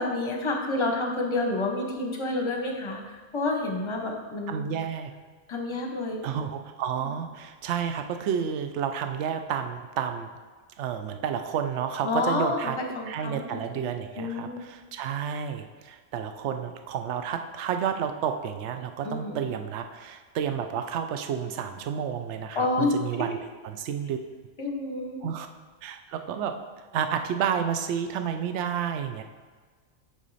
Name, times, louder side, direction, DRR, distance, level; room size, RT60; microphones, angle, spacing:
voice 1, 0.0-4.7 5.5-6.2 7.0-7.1 12.0-13.8 14.2-14.7 19.0-19.4 22.5-22.9 24.6-25.2, left 2 dB, 25° left, 2 dB, 0.8 m, -29 dB
voice 2, 4.5-5.1 6.2-10.3 10.8-12.8 13.1-24.2 25.2-25.5 25.8-26.6 26.9-29.2, right 8 dB, 70° right, 7 dB, 0.8 m, -30 dB
6.0 x 5.6 x 4.0 m, 1.4 s
omnidirectional pair, 1.3 m